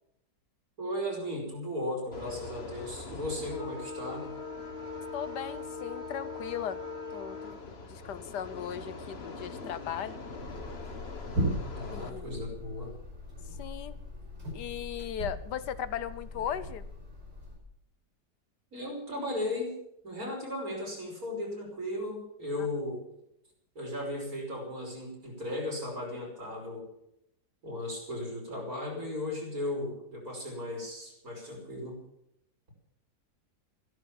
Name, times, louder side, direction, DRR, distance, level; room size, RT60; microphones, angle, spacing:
voice 1, 0.8-4.3 11.7-12.9 18.7-19.8 20.0-23.0 23.8-26.9 27.6-32.0, left 1 dB, 60° right, 0 dB, 6.0 m, -36 dB
sound 1, 2.1-12.1, left 4 dB, 40° left, 1.6 m, -41 dB
voice 2, 5.1-6.8 7.1-10.2 11.9-12.3 13.6-13.9 14.5-16.9, left 9 dB, 85° left, 14 dB, 1.5 m, -37 dB
sound 2, 10.4-17.6, equal, 90° right, 6.1 m, -38 dB
15.0 x 12.5 x 7.3 m, 0.79 s
omnidirectional pair, 1.8 m